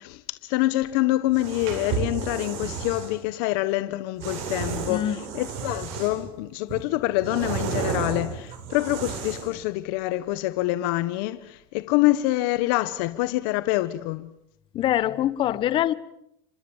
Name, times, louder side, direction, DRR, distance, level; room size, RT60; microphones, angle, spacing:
voice 1, 0.0-14.3, left 17 dB, 70° left, 1.2 m, -26 dB
sound 1, 1.3-3.1 4.2-6.3 6.7-9.6, right 6 dB, 65° right, 7.6 m, -32 dB
voice 2, 4.9-5.2 14.7-15.9, left 12 dB, 45° left, 1.4 m, -24 dB
28.5 x 26.0 x 7.3 m
supercardioid pair, 110°, 12 cm